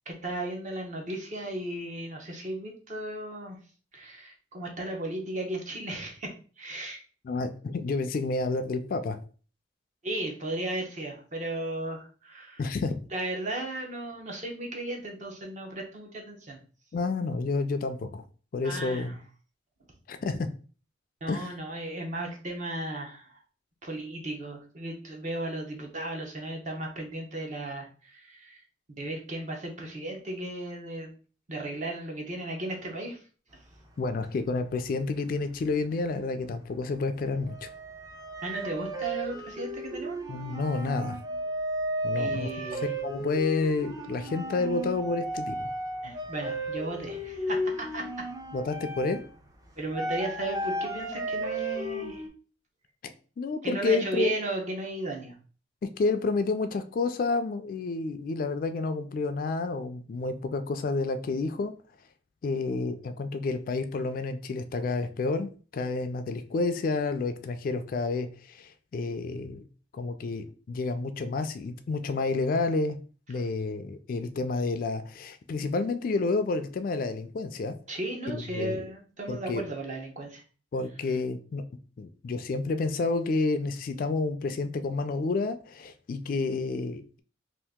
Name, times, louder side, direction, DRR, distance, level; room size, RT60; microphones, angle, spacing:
voice 1, 0.1-3.6 3.9-7.0 10.0-12.6 13.1-16.6 18.6-19.2 21.2-23.4 23.8-28.6 29.0-31.1 31.5-33.2 38.4-40.2 42.2-42.9 46.0-48.2 49.8-52.2 53.6-55.3 77.9-80.4, right 1 dB, 40° right, 1 dB, 0.8 m, -35 dB
voice 2, 7.2-9.2 12.6-13.0 16.9-18.2 18.5-19.2 20.1-20.5 21.3-21.5 34.0-37.7 40.3-41.2 42.0-42.5 43.0-45.7 48.5-49.2 53.4-54.3 56.0-61.7 62.4-69.6 69.9-73.0 73.3-77.8 78.3-78.9 79.3-79.6 80.7-81.6 82.0-87.2, left 3 dB, 50° left, 9 dB, 0.3 m, -30 dB
sound 1, 33.7-35.0 35.3-36.1 36.4-52.3, right 1 dB, 20° right, 0.5 m, -34 dB
2.8 x 2.5 x 3.5 m, 0.39 s
head